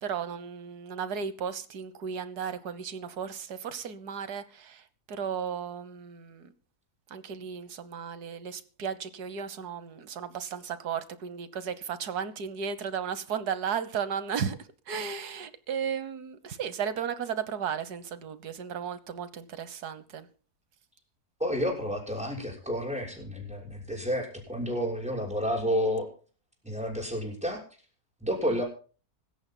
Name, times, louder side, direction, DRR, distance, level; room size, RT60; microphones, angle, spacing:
voice 1, 0.0-4.8 5.1-6.5 7.1-14.6 14.9-20.3 28.4-28.6, right 7 dB, 75° right, 1.6 m, -35 dB
voice 2, 21.4-26.1 26.6-27.6 28.2-28.6, equal, 5° right, 6.2 m, -30 dB
25.5 x 14.0 x 2.2 m
omnidirectional pair, 1.7 m